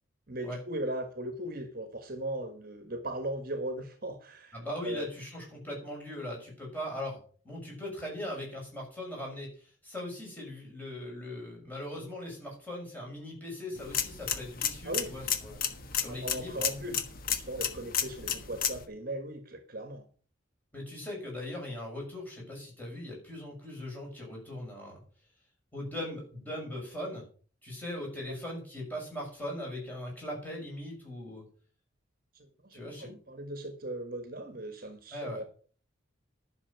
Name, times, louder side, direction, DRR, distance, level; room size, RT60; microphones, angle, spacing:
voice 1, 0.3-4.6 4.8-5.1 14.9-15.1 16.0-20.1 32.3-35.7, right 1 dB, 45° right, 8 dB, 1.4 m, -38 dB
voice 2, 4.5-7.2 7.4-15.6 15.9-16.7 20.7-25.0 25.7-27.2 27.6-31.4 32.7-33.1 35.1-35.4, left 1 dB, 10° left, -2 dB, 6.3 m, -39 dB
sound 1, 13.7-18.8, left 8 dB, 45° left, 1.4 m, -33 dB
11.5 x 6.3 x 7.0 m, 0.42 s
head